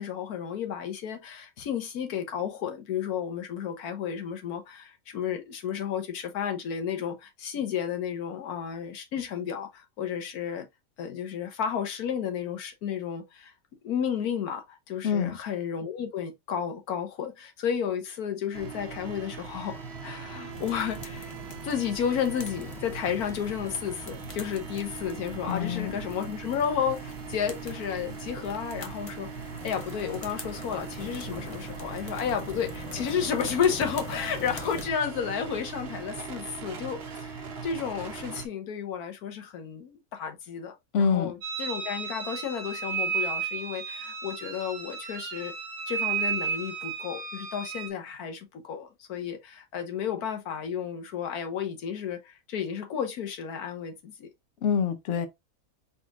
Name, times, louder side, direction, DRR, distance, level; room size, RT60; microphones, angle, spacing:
voice 1, 0.0-10.6 11.0-13.5 13.8-21.3 21.6-45.5 45.9-54.3, left 8 dB, 90° left, 1.4 m, -32 dB
voice 2, 15.0-15.4 25.5-26.0 40.9-41.3 54.6-55.3, left 6 dB, 60° left, 1.0 m, -26 dB
sound 1, 18.5-38.5, right 5 dB, 50° right, 1.1 m, -40 dB
sound 2, 20.5-34.9, left 3 dB, 30° left, 0.7 m, -44 dB
sound 3, 41.4-47.9, right 6 dB, 85° right, 1.6 m, -33 dB
4.5 x 4.1 x 2.4 m
omnidirectional pair, 1.5 m